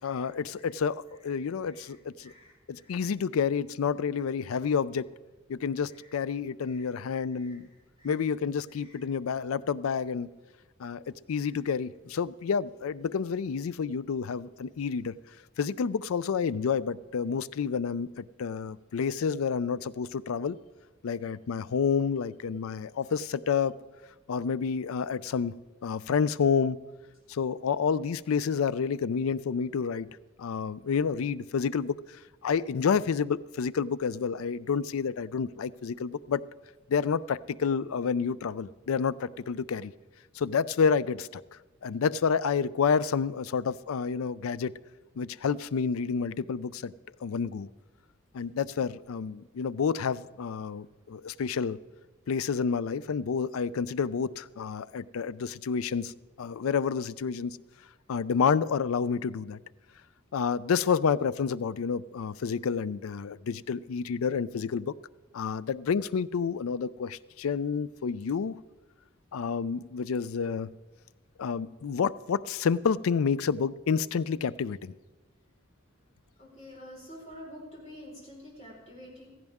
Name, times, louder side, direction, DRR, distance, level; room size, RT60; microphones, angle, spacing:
voice 1, 0.0-2.3 2.7-5.1 5.5-7.7 8.0-10.3 10.8-15.1 15.6-20.6 21.0-23.8 24.3-25.5 25.8-26.8 27.3-30.1 30.4-36.4 36.9-39.9 40.4-41.4 41.8-44.7 45.2-46.9 47.2-47.7 48.3-51.8 52.3-56.1 56.4-57.6 58.1-59.6 60.3-64.9 65.3-68.6 69.3-70.7 71.4-74.9, left 6 dB, 90° left, 18 dB, 0.4 m, -29 dB
voice 2, 2.2-3.0 5.9-6.1 6.6-6.9 7.3-7.6 8.0-8.2 8.7-9.0 11.4-11.5 76.4-79.3, equal, 30° left, -4 dB, 4.6 m, -49 dB
16.0 x 15.0 x 3.6 m, 1.2 s
head